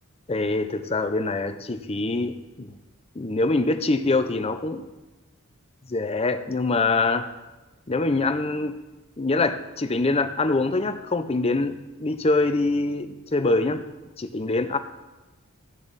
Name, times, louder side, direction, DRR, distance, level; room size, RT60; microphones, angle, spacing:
voice 1, 0.3-2.8 3.1-4.8 5.9-7.3 7.9-8.8 9.2-13.9 14.2-14.8, left 3 dB, 30° left, 9 dB, 0.6 m, -24 dB
15.5 x 7.0 x 4.1 m, 1.1 s
head